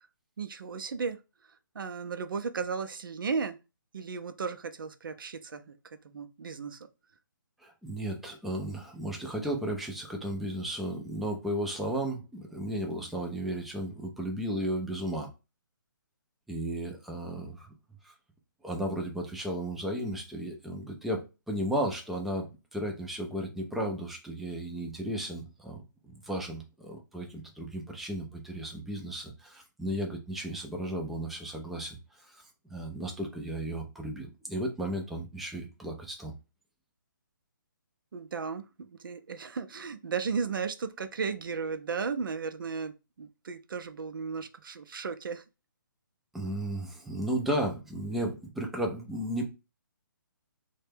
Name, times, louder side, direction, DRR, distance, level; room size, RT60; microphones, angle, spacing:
voice 1, 0.4-3.6 3.9-5.8 6.0-6.9 38.1-45.4, right 5 dB, 75° right, 0.5 m, -35 dB
voice 2, 7.6-15.3 16.5-17.7 18.0-18.1 18.6-36.3 46.3-49.5, right 1 dB, ahead, 0.3 m, -34 dB
3.1 x 2.2 x 3.3 m
hypercardioid pair, 150°, 11 cm